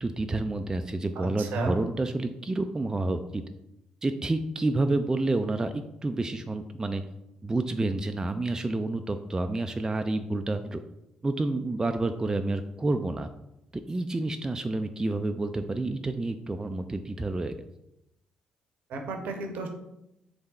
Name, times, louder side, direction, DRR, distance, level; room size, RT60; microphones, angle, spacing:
voice 1, 0.0-3.4 4.0-7.0 7.4-10.8 11.2-13.3 13.7-17.6, right 2 dB, 20° right, 8 dB, 0.3 m, -29 dB
voice 2, 1.2-1.7 18.9-19.7, right 3 dB, 60° right, 4 dB, 0.7 m, -32 dB
3.6 x 3.3 x 4.1 m, 0.86 s
figure-of-eight pair, 40°, 3 cm